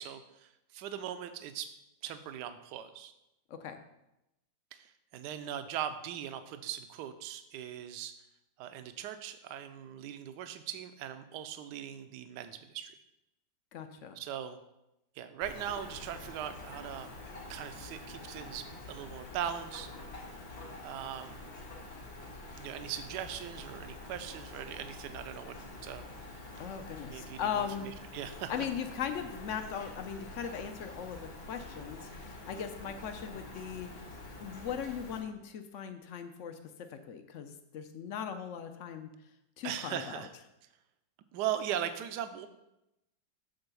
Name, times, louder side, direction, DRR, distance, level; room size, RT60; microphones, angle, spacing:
voice 1, 0.0-1.7 2.0-3.1 4.7-8.1 8.6-12.9 14.2-14.6 15.2-17.1 17.5-19.9 20.8-21.4 22.6-25.6 25.8-26.1 26.4-26.5 27.1-28.5 39.6-40.3 41.3-42.5, right 10 dB, 75° right, 10 dB, 1.2 m, -40 dB
voice 2, 13.7-14.2 26.6-27.9 28.5-31.2 31.5-34.1 34.4-36.6 36.9-39.1 39.6-40.3, left 8 dB, 70° left, 7 dB, 0.7 m, -39 dB
Rain, 15.4-35.2, left 2 dB, 90° left, 2.6 m, -47 dB
8.0 x 3.9 x 6.8 m, 0.90 s
omnidirectional pair, 2.0 m